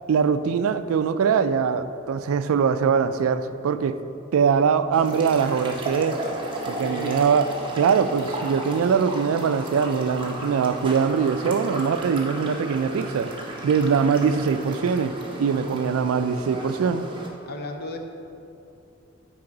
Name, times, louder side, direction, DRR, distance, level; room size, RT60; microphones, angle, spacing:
voice 1, 0.1-4.0 4.3-6.2 6.7-7.5 7.8-13.3 13.6-15.1 15.4-17.1, right 6 dB, 75° right, 12 dB, 0.3 m, -22 dB
sound 1, 4.9-17.3, right 1 dB, 25° right, 0.9 m, -34 dB
voice 2, 6.8-7.2 7.6-8.1 15.4-15.8 17.4-18.0, left 1 dB, 45° left, 3 dB, 0.7 m, -36 dB
9.5 x 4.8 x 3.9 m, 2.8 s
head